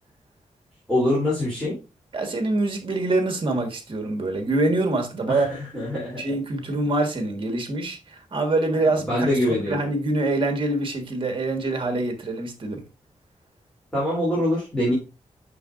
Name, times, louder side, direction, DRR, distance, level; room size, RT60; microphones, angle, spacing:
voice 1, 0.9-1.7 5.3-6.2 9.0-9.8 13.9-14.9, left 1 dB, 5° left, 3.1 m, -24 dB
voice 2, 2.1-5.5 6.2-9.3 9.7-12.8, right 2 dB, 45° right, 1.5 m, -25 dB
6.9 x 5.8 x 2.5 m
wide cardioid pair, 135°, 12 cm